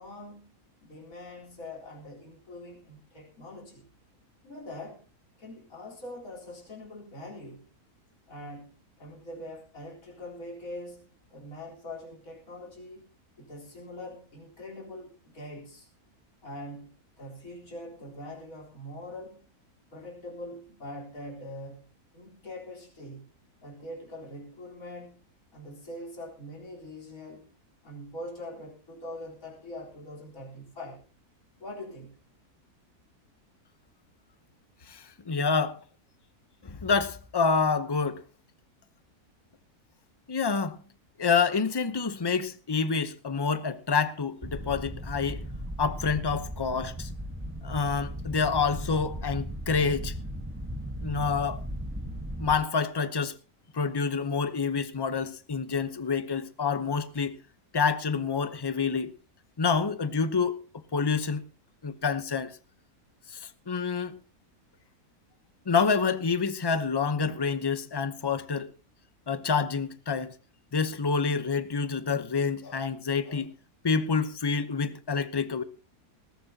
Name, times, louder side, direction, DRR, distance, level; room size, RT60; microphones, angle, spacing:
voice 1, 0.0-3.9 4.4-5.1 5.4-7.7 8.3-13.1 13.4-15.9 16.4-19.4 19.9-23.3 23.6-25.2 25.5-27.5 27.8-31.0 31.6-32.2, left 1 dB, 65° left, 4.4 m, -43 dB
voice 2, 34.9-35.8 36.6-38.2 40.3-40.8 41.2-45.5 45.8-47.1 47.6-50.1 51.0-51.6 52.4-53.3 53.7-57.4 57.7-59.1 59.6-60.6 60.9-61.4 61.8-62.5 63.3-64.2 65.7-68.7 69.3-70.3 70.7-73.5 73.8-75.6, left 5 dB, 25° left, 0.6 m, -27 dB
sound 1, 44.4-52.6, equal, 10° right, 1.2 m, -37 dB
20.0 x 14.5 x 2.8 m
omnidirectional pair, 1.6 m